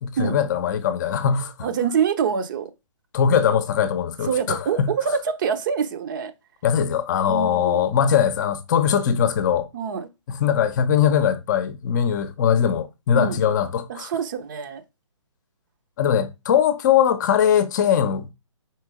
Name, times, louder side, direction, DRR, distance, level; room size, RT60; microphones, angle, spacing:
voice 1, 0.0-1.7 3.1-4.9 6.6-9.7 10.3-14.1 16.0-18.3, left 8 dB, 35° left, 0.8 m, -21 dB
voice 2, 1.6-2.7 4.3-6.3 7.3-7.9 9.7-10.1 13.2-13.4 13.9-14.8, right 7 dB, 40° right, 0.9 m, -25 dB
4.6 x 4.4 x 4.9 m
figure-of-eight pair, 140°, 16 cm